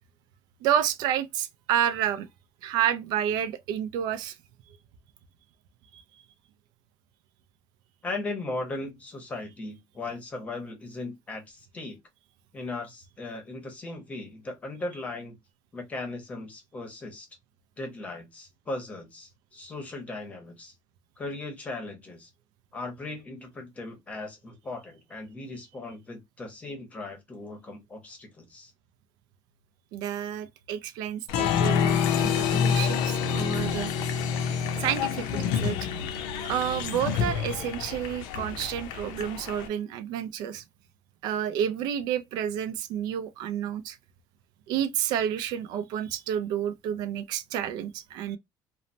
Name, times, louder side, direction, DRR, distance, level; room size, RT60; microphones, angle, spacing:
voice 1, 0.6-2.3 2.6-4.4 5.9-6.0 29.9-33.9 34.8-35.8 36.4-40.6 41.2-44.0 44.7-48.4, right 10 dB, 65° right, 0.3 m, -30 dB
voice 2, 8.0-12.0 12.5-15.4 15.7-17.3 17.8-20.7 21.2-22.3 22.7-28.7, left 2 dB, 20° left, 0.8 m, -38 dB
Applause, 31.3-39.7, left 7 dB, 80° left, 0.5 m, -27 dB
3.0 x 2.0 x 2.5 m
cardioid pair, 175°, 8 cm